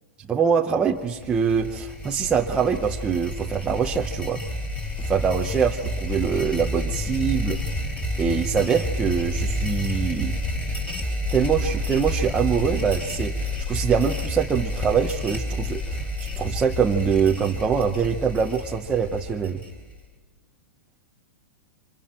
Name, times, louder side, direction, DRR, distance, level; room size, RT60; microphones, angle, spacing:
voice 1, 0.3-4.4 5.0-7.6 8.2-10.4 11.3-16.1 16.4-19.6, right 6 dB, 10° right, 0 dB, 0.8 m, -24 dB
sound 1, 1.0-20.0, left 1 dB, 10° left, 4.3 m, -29 dB
30.0 x 25.5 x 4.4 m, 1.3 s
supercardioid pair, 160°, 9 cm